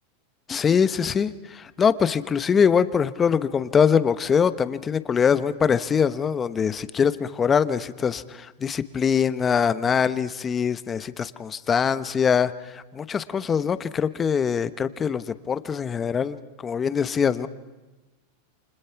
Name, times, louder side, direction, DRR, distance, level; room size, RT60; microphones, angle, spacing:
voice 1, 0.5-16.4 16.6-17.5, left 7 dB, 20° left, 13 dB, 1.0 m, -23 dB
29.5 x 26.0 x 5.9 m, 1.1 s
supercardioid pair, 130°, 0 cm